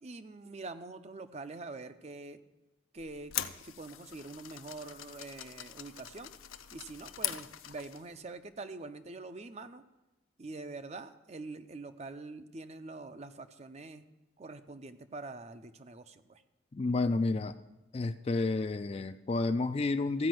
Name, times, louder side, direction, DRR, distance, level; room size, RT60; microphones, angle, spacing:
voice 1, 0.0-2.4 2.9-3.3 3.6-6.3 6.7-9.8 10.4-14.0 14.4-16.4, right 3 dB, 30° right, 10 dB, 0.5 m, -45 dB
sound 1, 3.0-8.1, left 12 dB, 80° left, 0.6 m, -41 dB
voice 2, 16.7-17.6 17.9-20.3, left 3 dB, 30° left, 11 dB, 0.3 m, -30 dB
14.5 x 5.2 x 7.7 m, 1.0 s
head